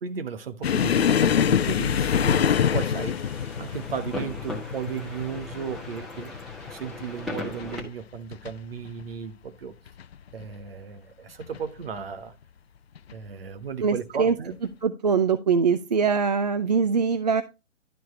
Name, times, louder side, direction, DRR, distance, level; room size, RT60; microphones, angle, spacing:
voice 1, 0.0-3.2 3.6-6.3 6.7-9.7 10.3-12.3 13.1-14.6, right 6 dB, 50° right, 1.3 m, -35 dB
sound 1, 0.6-7.8 8.1-8.5 8.9-9.0 9.9-10.4 11.4-11.6 13.0-13.1, left 8 dB, 55° left, 0.5 m, -25 dB
sound 2, 2.1-7.8, left 2 dB, ahead, 1.2 m, -39 dB
voice 2, 13.8-14.4 14.8-17.4, right 6 dB, 35° right, 0.5 m, -22 dB
12.0 x 4.6 x 4.3 m
figure-of-eight pair, 130°, 37 cm